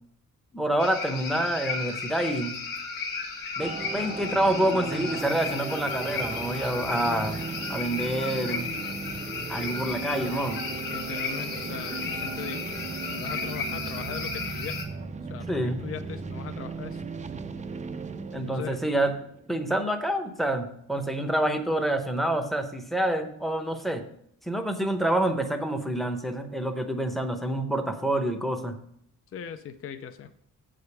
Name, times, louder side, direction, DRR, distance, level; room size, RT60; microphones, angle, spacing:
voice 1, 0.5-2.5 3.6-7.4 7.7-8.7 9.5-10.7 15.5-15.8 18.3-19.1 19.5-24.1 24.4-28.8, right 1 dB, ahead, 6 dB, 0.7 m, -27 dB
sound 1, 0.8-14.9, left 4 dB, 90° left, 1.5 m, -34 dB
sound 2, 3.6-19.9, right 5 dB, 25° right, 0.4 m, -37 dB
voice 2, 10.9-12.8 13.1-14.8 15.3-17.0 18.5-18.8 29.3-30.3, left 8 dB, 45° left, 9 dB, 0.5 m, -39 dB
7.8 x 5.0 x 6.9 m, 0.72 s
wide cardioid pair, 170°, 33 cm